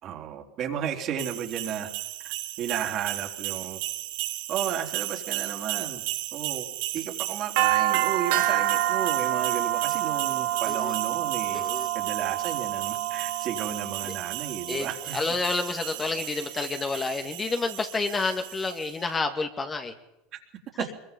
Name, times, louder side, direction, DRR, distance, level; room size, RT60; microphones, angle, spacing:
voice 1, 0.0-1.9 2.6-3.8 4.5-6.0 6.3-6.6 6.9-11.6 11.9-15.2 20.3-20.4 20.8-20.9, right 9 dB, 50° right, 2 dB, 3.8 m, -33 dB
sound 1, 1.2-18.9, right 14 dB, 70° right, 1.9 m, -30 dB
voice 2, 11.5-11.9 14.0-14.1 14.7-19.9, left 3 dB, 25° left, 5 dB, 2.3 m, -29 dB
24.0 x 22.5 x 5.5 m, 0.92 s
hypercardioid pair, 95°, 0 cm